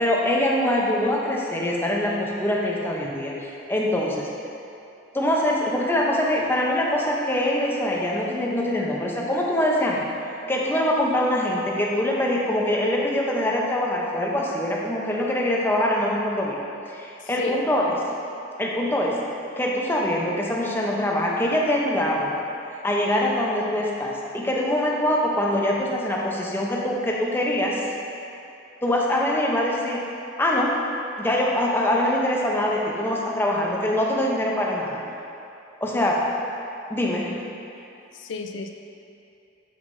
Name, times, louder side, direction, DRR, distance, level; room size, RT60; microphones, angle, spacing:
voice 1, 0.0-4.3 5.1-10.1 10.5-16.6 16.9-17.9 18.6-19.2 19.6-22.3 22.8-27.8 28.8-30.0 30.4-30.8 31.2-35.0 35.8-36.3 36.9-37.4, left 1 dB, 10° left, -3 dB, 0.6 m, -23 dB
voice 2, 17.2-17.6 37.9-38.7, left 4 dB, 65° left, 5 dB, 0.4 m, -33 dB
7.4 x 5.9 x 2.6 m, 2.7 s
head